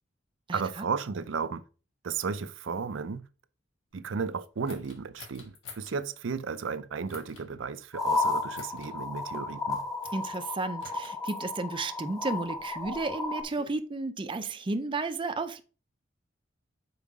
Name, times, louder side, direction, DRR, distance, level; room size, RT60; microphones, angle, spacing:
voice 1, 0.5-1.6 2.0-3.3 3.9-9.9, right 5 dB, 75° right, 0.5 m, -34 dB
sound 1, 4.6-6.0 7.1-7.5 8.5-8.9 10.0-10.4 10.8-11.4 12.3-13.7, left 4 dB, 75° left, 1.4 m, -49 dB
sound 2, 7.9-13.4, left 3 dB, 20° left, 1.0 m, -33 dB
voice 2, 10.1-15.6, right 3 dB, 25° right, 0.5 m, -33 dB
5.5 x 4.6 x 4.7 m
head